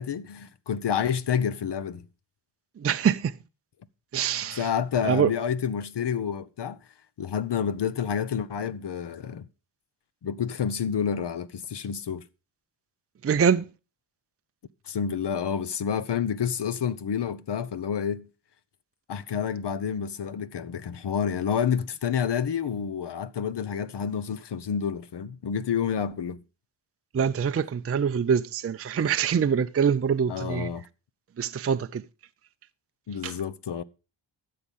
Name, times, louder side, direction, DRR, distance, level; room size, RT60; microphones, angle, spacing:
voice 1, 0.0-2.0 4.5-6.8 7.2-9.5 10.2-12.2 14.9-18.3 19.1-26.4 30.3-30.8 33.1-33.8, left 7 dB, 55° left, 1.0 m, -29 dB
voice 2, 2.8-3.4 4.1-4.7 5.0-5.3 13.2-13.6 27.1-30.7 31.4-32.0 33.2-33.4, right 7 dB, 30° right, 0.5 m, -24 dB
12.5 x 7.7 x 5.4 m
cardioid pair, 80°, 49 cm